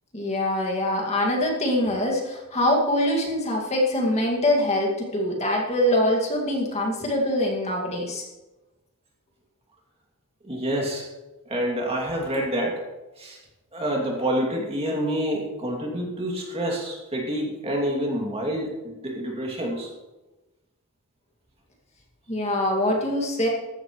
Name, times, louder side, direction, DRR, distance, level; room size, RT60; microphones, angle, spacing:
voice 1, 0.1-8.2 22.3-23.5, left 1 dB, 30° left, 0 dB, 2.2 m, -24 dB
voice 2, 10.4-11.1 11.5-12.8 13.2-13.4 13.7-19.9, equal, 30° right, -1 dB, 2.6 m, -27 dB
14.5 x 12.0 x 3.2 m, 1.1 s
head